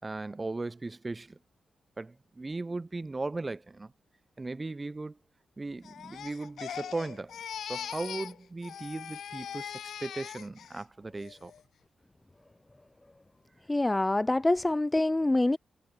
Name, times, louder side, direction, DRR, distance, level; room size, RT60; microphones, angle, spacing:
voice 1, 0.0-1.4 2.0-3.9 4.4-5.2 5.6-7.4 7.6-9.7 10.0-11.5, right 3 dB, 25° right, 5.8 m, -37 dB
Crying sobbing, 5.8-8.4 8.6-10.8 11.2-11.6, left 9 dB, 85° left, 3.4 m, -41 dB
voice 2, 13.7-15.6, left 2 dB, 20° left, 0.7 m, -25 dB
cardioid pair, 80°, 0 cm